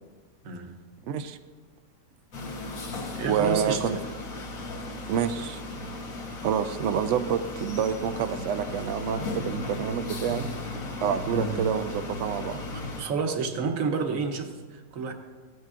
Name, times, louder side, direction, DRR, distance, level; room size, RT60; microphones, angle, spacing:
voice 1, 1.1-1.4 3.2-4.0 5.1-5.6 6.4-10.5 11.0-12.6, right 8 dB, 90° right, 9 dB, 0.6 m, -28 dB
sound 1, 2.3-13.0, left 2 dB, 55° left, 1.5 m, -36 dB
voice 2, 3.1-3.9 11.3-11.6 12.6-15.1, right 4 dB, 55° right, 5 dB, 1.1 m, -30 dB
16.5 x 9.2 x 2.5 m, 1.4 s
omnidirectional pair, 1.9 m